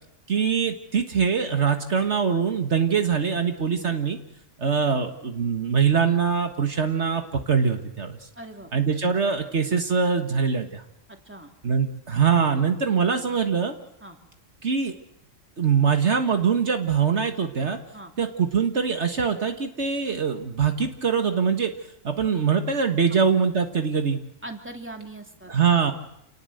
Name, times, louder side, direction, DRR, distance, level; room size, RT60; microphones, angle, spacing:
voice 1, 0.3-4.2 4.6-8.2 8.7-10.8 11.6-13.8 14.6-14.9 15.6-17.8 18.2-21.7 22.0-24.2 25.5-25.9, right 6 dB, 65° right, 6 dB, 1.8 m, -23 dB
voice 2, 8.3-8.7 9.1-9.2 11.1-11.5 14.0-14.2 17.9-18.1 23.1-23.2 24.4-25.9, right 2 dB, 10° right, 4 dB, 2.8 m, -41 dB
28.5 x 19.0 x 7.9 m, 0.81 s
omnidirectional pair, 1.3 m